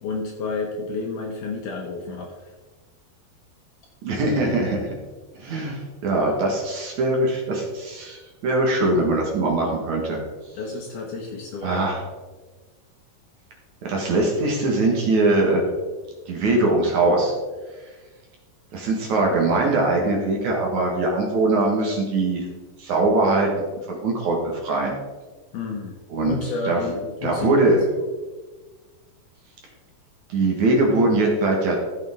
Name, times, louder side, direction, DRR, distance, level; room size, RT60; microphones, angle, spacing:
voice 1, 0.0-2.5 10.6-11.9 25.5-26.0 26.2-28.0, left 3 dB, 70° left, 2 dB, 2.0 m, -30 dB
voice 2, 4.0-4.9 5.4-10.2 11.6-12.0 13.8-15.7 16.3-17.3 18.7-22.4 22.8-25.0 26.1-26.4 26.7-26.9 27.2-27.8 30.3-31.8, right 2 dB, 60° right, -1 dB, 2.5 m, -21 dB
14.5 x 7.0 x 3.6 m, 1.3 s
omnidirectional pair, 4.5 m